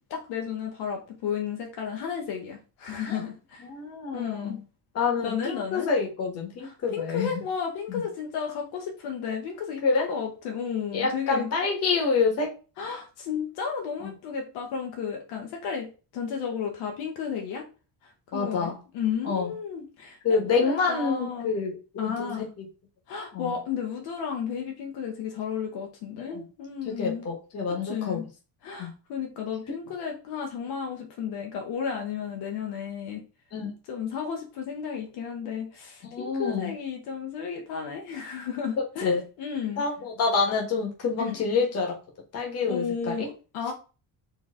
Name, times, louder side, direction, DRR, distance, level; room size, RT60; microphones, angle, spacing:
voice 1, 0.1-3.7 4.1-4.6 5.2-5.9 6.6-11.5 12.8-17.7 18.0-21.5 22.0-22.5 23.1-27.3 27.7-28.2 28.6-33.2 33.9-39.8 41.2-41.4 42.6-43.7, left 7 dB, 70° left, 2 dB, 1.1 m, -33 dB
voice 2, 3.6-4.6 4.9-7.3 7.9-8.0 9.8-10.1 10.9-12.5 14.0-14.1 18.3-18.8 19.2-19.5 20.2-22.3 22.6-22.7 23.3-23.5 26.2-26.4 26.8-28.2 28.8-28.9 33.5-33.7 36.1-36.7 39.0-39.2 39.8-42.0 42.3-43.3, left 4 dB, 35° left, 1 dB, 1.4 m, -27 dB
4.4 x 3.3 x 3.7 m, 0.33 s
cardioid pair, 180°, 41 cm